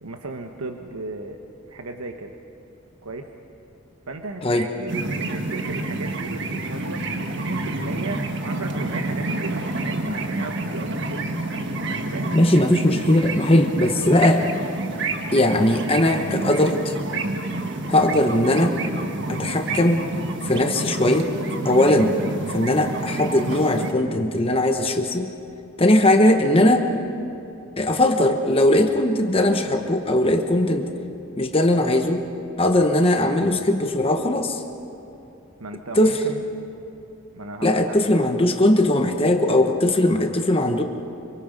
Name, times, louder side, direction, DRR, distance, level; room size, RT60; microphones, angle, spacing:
voice 1, 0.0-2.4 3.0-3.3 4.1-11.3 12.1-12.4 35.6-36.4 37.3-38.2, right 3 dB, 90° right, 4 dB, 1.2 m, -35 dB
sound 1, 4.9-23.9, right 2 dB, 55° right, 1.5 m, -29 dB
voice 2, 12.3-14.5 15.3-16.9 17.9-18.8 19.3-20.1 20.4-21.3 21.6-22.2 22.5-25.3 25.8-26.9 27.8-30.9 31.3-32.2 32.6-34.6 36.0-36.2 37.6-40.8, left 1 dB, 25° left, 5 dB, 1.1 m, -19 dB
26.0 x 24.5 x 5.3 m, 2.8 s
head